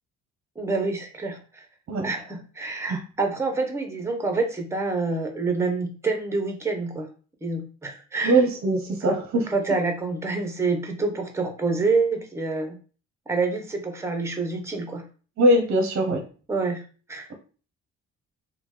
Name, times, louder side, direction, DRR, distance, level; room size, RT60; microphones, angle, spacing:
voice 1, 0.6-1.7 2.0-7.1 7.4-8.4 9.0-9.2 9.5-12.8 13.3-15.0 16.5-16.8 17.1-17.3, right 3 dB, 10° right, 4 dB, 0.7 m, -27 dB
voice 2, 8.2-9.5 15.4-16.2, right 1 dB, 45° right, 3 dB, 0.6 m, -21 dB
3.0 x 2.1 x 3.2 m, 0.38 s
cardioid pair, 90°, 30 cm